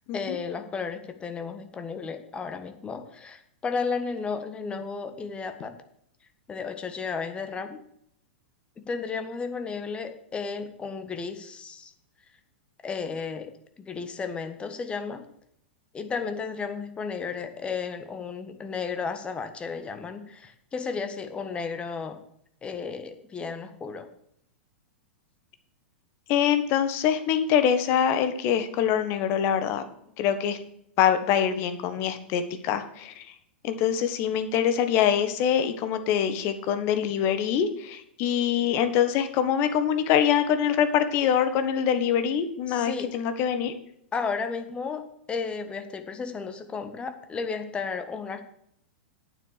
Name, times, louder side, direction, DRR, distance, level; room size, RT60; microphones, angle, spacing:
voice 1, 0.1-5.7 6.5-7.8 8.8-11.9 12.8-15.3 15.9-22.2 22.6-24.1 42.7-43.1 44.1-48.4, left 5 dB, 20° left, 8 dB, 1.5 m, -33 dB
voice 2, 26.3-29.8 30.2-30.6 31.0-33.3 33.6-43.7, left 9 dB, 40° left, 10 dB, 1.4 m, -24 dB
9.0 x 7.3 x 6.7 m, 0.70 s
figure-of-eight pair, 100°, 6 cm